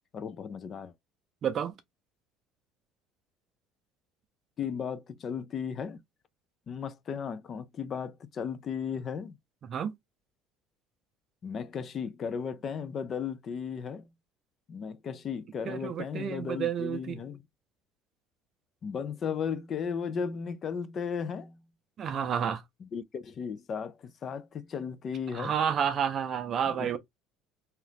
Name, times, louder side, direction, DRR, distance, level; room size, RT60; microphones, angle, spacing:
voice 1, 0.1-0.9 4.6-6.0 6.7-9.4 11.4-14.1 14.7-17.4 18.8-21.6 22.8-25.5 26.7-27.0, left 6 dB, 35° left, 0.4 m, -35 dB
voice 2, 1.4-1.7 9.7-9.9 15.7-17.2 22.0-22.6 25.3-27.0, right 8 dB, 35° right, 0.5 m, -30 dB
2.8 x 2.4 x 3.3 m
cardioid pair, 145°, 0 cm